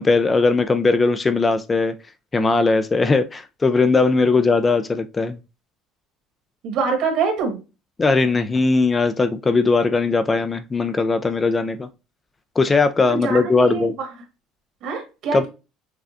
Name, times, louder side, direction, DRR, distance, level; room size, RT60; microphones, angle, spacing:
voice 1, 0.0-1.9 2.3-5.4 8.0-11.9 12.6-13.9 15.3-15.5, left 3 dB, 20° left, 0.3 m, -19 dB
voice 2, 6.6-7.6 13.1-14.1 14.8-15.5, right 5 dB, 65° right, 1.6 m, -25 dB
5.9 x 2.2 x 2.5 m
cardioid pair, 125°, 0 cm